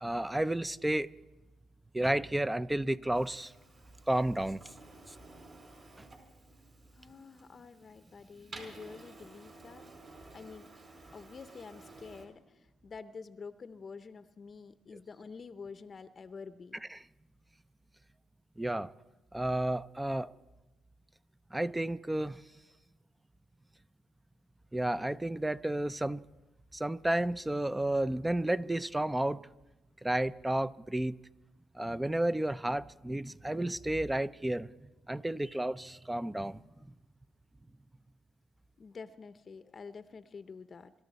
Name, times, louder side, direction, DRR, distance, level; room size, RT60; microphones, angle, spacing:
voice 1, 0.0-1.1 1.9-3.5 4.1-4.6 16.9-17.0 18.6-18.9 19.3-20.3 21.5-22.4 24.7-26.2 26.7-29.4 30.0-31.2 31.7-36.6, right 1 dB, 10° right, 0.5 m, -32 dB
Printer, 3.1-12.3, right 2 dB, 50° right, 4.7 m, -53 dB
voice 2, 6.9-9.8 10.3-10.7 11.1-16.8 38.8-40.9, left 5 dB, 40° left, 0.7 m, -48 dB
24.0 x 13.0 x 4.2 m
cardioid pair, 90°, 0 cm